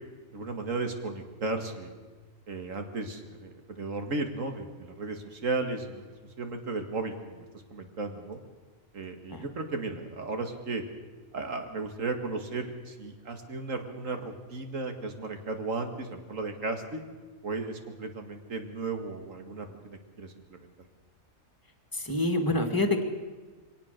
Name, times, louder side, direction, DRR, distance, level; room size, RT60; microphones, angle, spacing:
voice 1, 0.3-1.9 2.5-8.4 8.9-10.8 11.3-17.0 17.4-20.7, right 3 dB, 65° right, 6 dB, 2.3 m, -35 dB
voice 2, 21.9-23.0, left 2 dB, 15° left, 5 dB, 2.1 m, -27 dB
23.5 x 18.0 x 6.7 m, 1.3 s
omnidirectional pair, 1.5 m